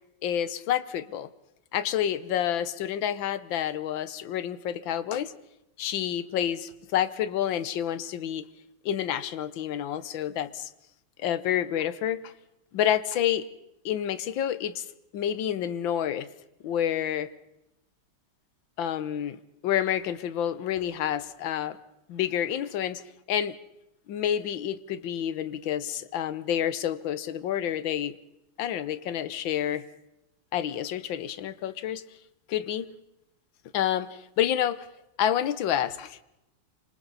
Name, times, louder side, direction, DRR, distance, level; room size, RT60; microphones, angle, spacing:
voice 1, 0.2-1.3 1.7-5.3 5.8-8.5 8.8-10.7 11.2-12.3 12.7-13.5 13.8-14.9 15.1-16.3 16.6-17.3 18.8-21.8 22.1-23.0 23.3-23.6 24.1-28.1 28.6-29.8 30.5-32.0 32.5-32.9 33.7-34.9 35.2-36.2, left 10 dB, 70° left, 15 dB, 1.6 m, -29 dB
27.0 x 26.0 x 4.1 m, 0.88 s
omnidirectional pair, 2.3 m